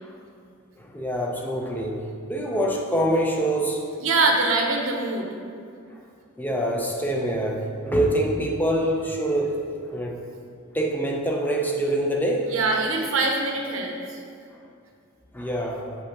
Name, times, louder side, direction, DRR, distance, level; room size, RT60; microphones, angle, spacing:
voice 1, 0.8-3.8 6.4-9.6 9.9-10.2 10.7-12.5 15.3-15.9, right 1 dB, 10° left, 0 dB, 0.5 m, -25 dB
voice 2, 4.0-5.3 12.5-14.2, right 3 dB, 75° right, 1 dB, 0.8 m, -23 dB
5.6 x 3.4 x 5.8 m, 2.4 s
head